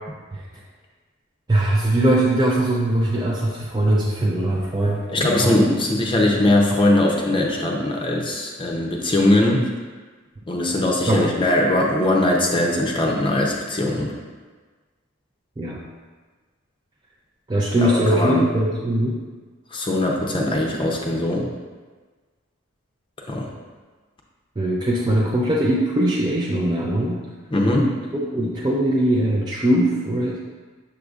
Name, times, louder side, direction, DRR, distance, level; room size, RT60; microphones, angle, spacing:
voice 1, 1.5-5.7 11.1-11.4 15.6-15.8 17.5-19.2 24.6-27.2 28.1-30.4, right 1 dB, 20° right, -4 dB, 0.5 m, -21 dB
voice 2, 5.1-9.7 10.5-14.1 17.8-18.4 19.7-21.5 23.3-23.5 27.5-27.9, left 1 dB, 25° left, -1 dB, 0.7 m, -20 dB
7.0 x 6.4 x 2.4 m, 1.4 s
head